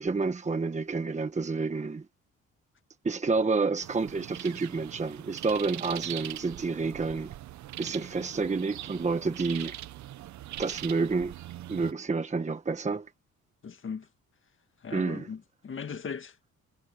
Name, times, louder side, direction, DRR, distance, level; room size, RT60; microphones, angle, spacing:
voice 1, 0.0-2.1 3.0-7.3 7.8-9.8 10.6-11.3 11.7-13.1 14.9-15.3, right 4 dB, 25° right, 1.3 m, -29 dB
sound 1, 3.8-11.9, right 13 dB, 70° right, 0.8 m, -41 dB
voice 2, 13.6-14.1 14.8-16.5, left 6 dB, 40° left, 1.9 m, -39 dB
cardioid pair, 90°, 30 cm